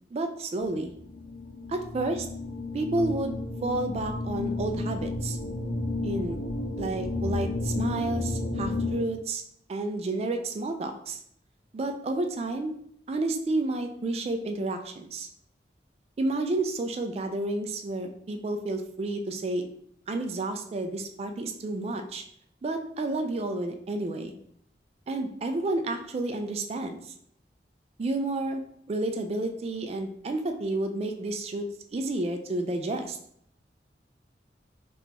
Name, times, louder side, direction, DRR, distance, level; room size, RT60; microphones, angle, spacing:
voice 1, 0.1-0.9 1.7-2.3 2.7-5.4 6.0-6.4 6.8-9.4 9.7-11.2 11.7-12.7 13.1-15.3 16.2-19.6 20.1-22.2 22.6-24.3 25.1-27.1 28.0-28.6 28.9-31.6 31.9-33.2, right 2 dB, 35° right, 5 dB, 0.3 m, -30 dB
sound 1, 0.6-9.0, left 2 dB, 85° left, 0.8 m, -32 dB
2.9 x 2.5 x 3.6 m, 0.67 s
head